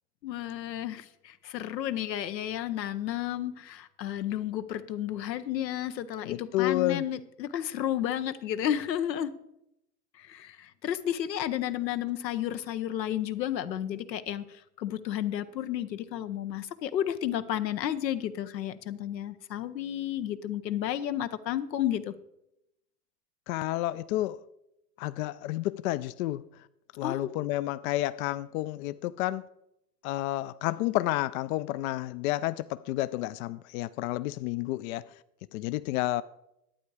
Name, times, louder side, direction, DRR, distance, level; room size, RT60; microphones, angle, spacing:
voice 1, 0.2-9.4 10.1-22.1 27.0-27.3, left 11 dB, 85° left, 0.9 m, -32 dB
voice 2, 6.2-7.0 23.5-24.4 25.0-26.4 27.0-29.4 30.0-35.1 35.5-36.2, left 16 dB, 60° left, 0.5 m, -30 dB
11.5 x 8.7 x 4.7 m
hypercardioid pair, 105°, 49 cm